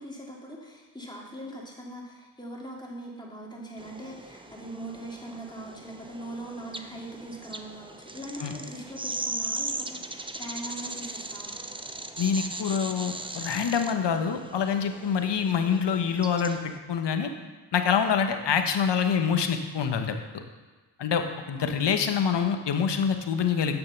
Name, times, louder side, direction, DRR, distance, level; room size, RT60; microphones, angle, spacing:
voice 1, 0.0-11.6 21.6-21.9, right 1 dB, 10° left, -3 dB, 3.1 m, -41 dB
sound 1, 3.8-16.8, right 2 dB, 10° right, 0.6 m, -38 dB
voice 2, 12.2-16.6 16.9-17.3 17.7-20.1 21.0-23.8, left 7 dB, 65° left, 7 dB, 1.1 m, -26 dB
9.2 x 6.7 x 5.8 m, 1.3 s
cardioid pair, 60°, 45 cm